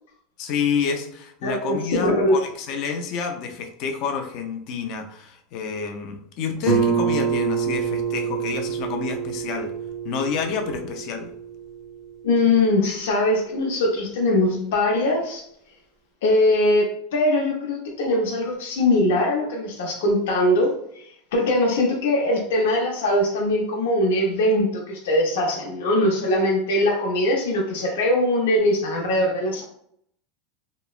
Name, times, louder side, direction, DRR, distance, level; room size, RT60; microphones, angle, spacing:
voice 1, 0.4-9.7 10.0-11.3, left 6 dB, 45° left, 4 dB, 0.4 m, -28 dB
voice 2, 1.4-2.4 12.2-15.4 16.2-20.7 21.0-21.1 21.3-29.6, left 1 dB, 90° left, -1 dB, 0.6 m, -21 dB
Guitar, 6.7-12.1, right 7 dB, 20° right, 0.5 m, -26 dB
2.9 x 2.0 x 2.3 m, 0.69 s
supercardioid pair, 160°, 0 cm